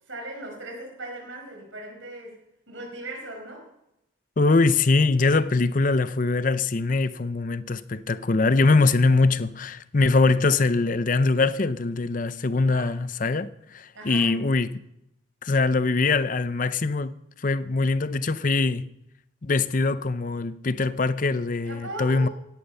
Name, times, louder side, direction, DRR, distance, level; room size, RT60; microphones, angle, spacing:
voice 1, 0.1-2.4 2.7-3.7 12.6-12.9 13.9-14.3 21.6-22.3, right 1 dB, 75° right, 5.1 m, -38 dB
voice 2, 4.4-14.8 15.4-17.1 17.4-18.9 19.4-22.3, left 3 dB, 40° left, 0.6 m, -22 dB
17.0 x 10.5 x 5.5 m
head